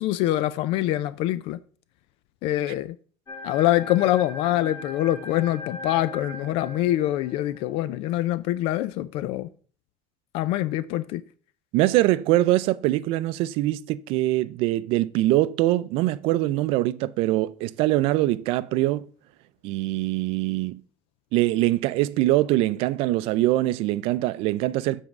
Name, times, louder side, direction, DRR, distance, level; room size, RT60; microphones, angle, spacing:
voice 1, 0.0-1.6 2.4-3.0 3.4-9.5 10.3-11.2, left 14 dB, 75° left, 0.4 m, -24 dB
sound 1, 3.3-7.7, left 2 dB, 30° left, 1.3 m, -39 dB
voice 2, 11.7-19.1 19.6-20.8 21.3-25.0, right 16 dB, 75° right, 0.4 m, -23 dB
7.4 x 3.5 x 5.8 m
cardioid pair, 125°, 10 cm